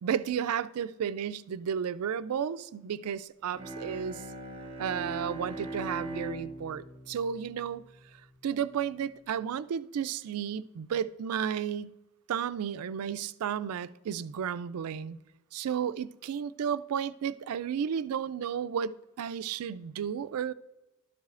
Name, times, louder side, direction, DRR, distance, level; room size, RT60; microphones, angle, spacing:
voice 1, 0.0-4.2 4.8-7.8 8.4-11.9 12.3-15.2 15.5-20.5, right 8 dB, 90° right, 0.4 m, -33 dB
Bowed string instrument, 3.5-8.4, right 1 dB, 25° right, 1.1 m, -41 dB
12.0 x 7.2 x 2.5 m
head